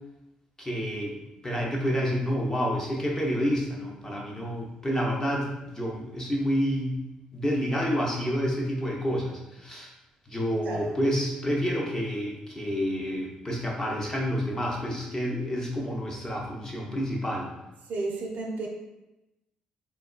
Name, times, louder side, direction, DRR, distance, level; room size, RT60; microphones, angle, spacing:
voice 1, 0.6-1.1 1.4-7.0 7.3-9.9 10.3-17.5, equal, 20° left, -1 dB, 0.7 m, -29 dB
voice 2, 17.9-18.7, right 3 dB, 50° right, -1 dB, 0.5 m, -32 dB
3.6 x 2.2 x 2.4 m, 0.96 s
figure-of-eight pair, 45°, 3 cm